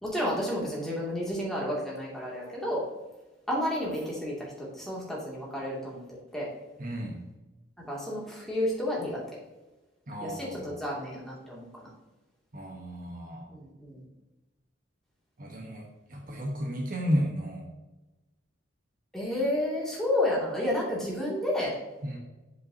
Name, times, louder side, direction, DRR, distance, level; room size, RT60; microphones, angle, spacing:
voice 1, 0.0-2.8 3.5-6.0 6.3-6.5 7.9-9.2 10.2-11.9 13.5-14.0 19.1-21.7, left 1 dB, ahead, -5 dB, 2.5 m, -31 dB
voice 2, 6.8-7.2 10.1-10.7 12.5-13.5 15.4-17.7 22.0-22.2, equal, 45° right, 1 dB, 1.2 m, -33 dB
8.2 x 7.6 x 2.8 m, 1.1 s
head